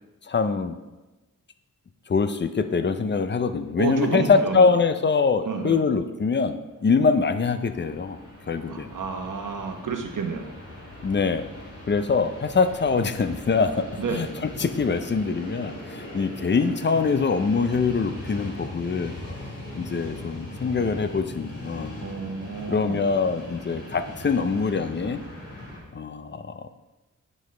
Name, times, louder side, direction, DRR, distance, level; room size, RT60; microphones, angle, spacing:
voice 1, 0.3-0.8 2.1-8.2 8.5-8.9 11.0-11.5 11.9-19.2 19.8-21.9 22.7-25.2 25.9-26.7, left 4 dB, 35° left, 10 dB, 0.5 m, -24 dB
voice 2, 3.8-4.6 5.4-5.8 8.7-10.5 14.0-14.2 22.0-23.0, right 5 dB, 70° right, 4 dB, 1.0 m, -30 dB
Train, 6.8-25.8, left 1 dB, 65° left, 2.6 m, -39 dB
9.5 x 5.3 x 3.3 m, 1.1 s
wide cardioid pair, 90°, 32 cm